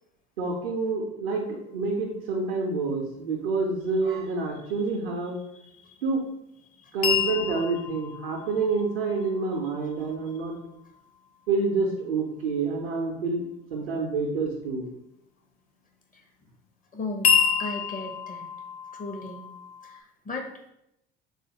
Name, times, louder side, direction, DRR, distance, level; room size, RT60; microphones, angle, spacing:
voice 1, 0.4-5.4 6.0-6.2 6.9-10.6 11.5-13.4 13.7-14.9, right 3 dB, 90° right, -2 dB, 0.5 m, -28 dB
voice 2, 5.5-5.9 6.8-7.0 16.9-18.4 18.9-19.4 19.8-20.5, left 2 dB, 30° left, 3 dB, 0.7 m, -37 dB
sound 1, 7.0-11.0 17.2-20.0, left 7 dB, 70° left, 0.6 m, -29 dB
3.6 x 2.4 x 2.8 m, 0.82 s
hypercardioid pair, 60°, 29 cm